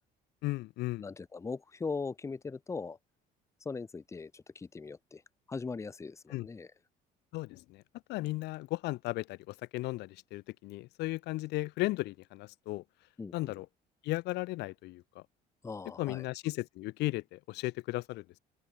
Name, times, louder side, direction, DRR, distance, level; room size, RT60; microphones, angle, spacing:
voice 1, 0.4-1.1 6.3-6.5 7.3-7.8 8.1-12.8 13.3-13.7 14.0-15.2 16.0-18.4, left 20 dB, 70° left, 0.6 m, -35 dB
voice 2, 1.0-3.0 3.6-5.2 5.5-6.7 13.2-13.6 15.6-16.3, left 4 dB, 15° left, 1.8 m, -40 dB
cardioid pair, 165°, 18 cm